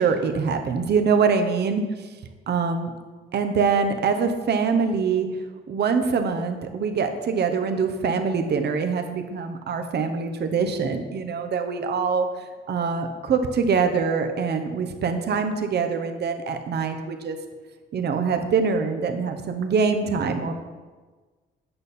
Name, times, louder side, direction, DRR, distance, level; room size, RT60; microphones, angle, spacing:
voice 1, 0.0-1.8 2.5-2.9 3.3-5.3 5.7-12.3 12.7-17.4 17.9-20.5, right 5 dB, 55° right, 6 dB, 0.9 m, -24 dB
8.8 x 5.3 x 4.2 m, 1.4 s
cardioid pair, 90°, 20 cm